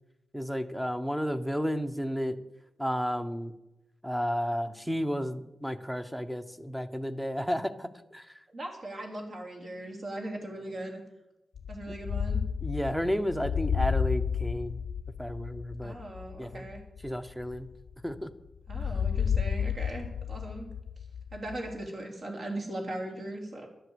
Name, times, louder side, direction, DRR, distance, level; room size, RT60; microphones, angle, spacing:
voice 1, 0.3-2.4 2.8-3.5 4.0-8.4 12.6-14.8 15.2-16.0 16.4-16.7 17.0-17.7 18.0-18.3, equal, 5° right, 10 dB, 0.9 m, -32 dB
voice 2, 8.5-11.0 11.7-12.4 15.8-16.8 18.7-20.7 21.0-21.1 21.3-23.7, right 1 dB, 50° right, 1 dB, 3.3 m, -39 dB
sound 1, 11.6-18.2 18.7-21.9, left 7 dB, 80° left, 0.4 m, -32 dB
12.0 x 7.9 x 8.0 m, 0.94 s
wide cardioid pair, 110°, 0 cm